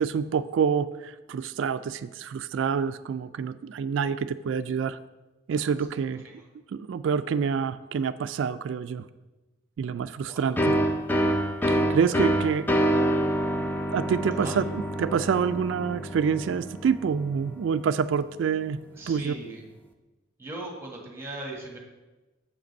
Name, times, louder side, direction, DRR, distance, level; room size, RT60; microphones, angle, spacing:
voice 1, 0.0-5.0 5.5-6.2 6.7-9.0 9.8-10.7 11.7-12.8 13.9-18.8 19.1-19.3, right 6 dB, 75° right, 11 dB, 0.3 m, -27 dB
sound 1, 10.6-18.0, equal, 10° left, 0.5 m, -27 dB
voice 2, 18.9-19.6 20.4-21.8, right 2 dB, 15° right, 0 dB, 1.5 m, -39 dB
7.3 x 5.1 x 5.3 m, 1.1 s
head